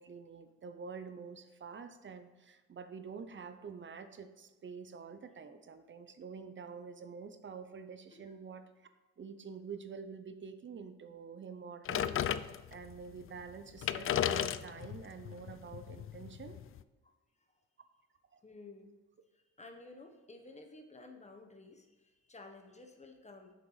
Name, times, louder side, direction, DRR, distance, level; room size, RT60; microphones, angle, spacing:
voice 1, 0.0-8.9 9.2-12.2 12.7-16.6 18.3-18.4, right 5 dB, 40° right, 10 dB, 0.8 m, -47 dB
sound 1, 11.9-12.9 13.5-13.6 13.8-16.8, left 10 dB, 45° left, 0.4 m, -35 dB
voice 2, 18.4-19.0 19.3-23.5, left 2 dB, 20° left, 4 dB, 1.3 m, -53 dB
8.0 x 6.7 x 5.0 m, 1.2 s
cardioid pair, 90°, 30 cm